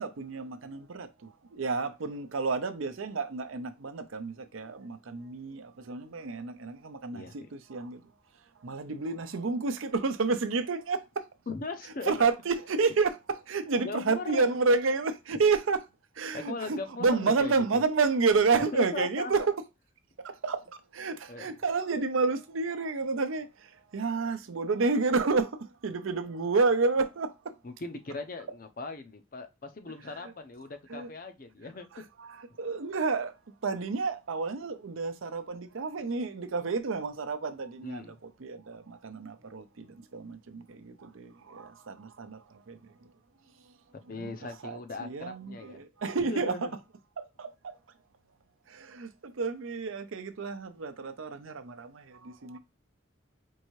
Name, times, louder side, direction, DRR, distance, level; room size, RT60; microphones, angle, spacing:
voice 1, 0.0-8.0 8.6-11.3 12.0-15.8 16.2-19.6 20.2-27.5 30.2-30.3 30.9-31.1 31.9-33.4 33.6-42.9 44.1-44.3 44.6-46.6 47.2-47.8 48.7-52.6, right 4 dB, 80° right, 0.6 m, -30 dB
voice 2, 7.1-7.5 11.5-12.1 13.8-14.4 16.3-17.8 18.7-19.3 21.3-21.5 27.6-31.9 37.8-38.1 44.1-45.8 46.3-46.8, left 3 dB, 45° left, 0.5 m, -39 dB
4.6 x 2.7 x 3.0 m
head